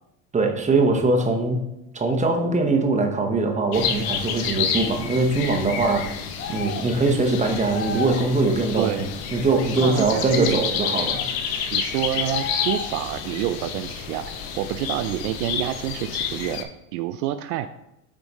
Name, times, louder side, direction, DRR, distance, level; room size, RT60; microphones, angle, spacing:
voice 1, 0.3-1.6 1.9-6.1 6.5-9.1 9.3-11.2, right 3 dB, 15° right, 4 dB, 1.0 m, -22 dB
sound 1, 3.7-16.6, left 7 dB, 50° left, 1.0 m, -29 dB
sound 2, 6.4-6.9 7.7-8.3 10.8-11.3 12.3-13.1, left 6 dB, 25° left, 0.8 m, -32 dB
voice 2, 8.8-9.1 9.8-11.0 11.7-17.7, right 12 dB, 75° right, 9 dB, 0.5 m, -28 dB
8.2 x 3.6 x 4.1 m, 0.87 s
supercardioid pair, 115°, 46 cm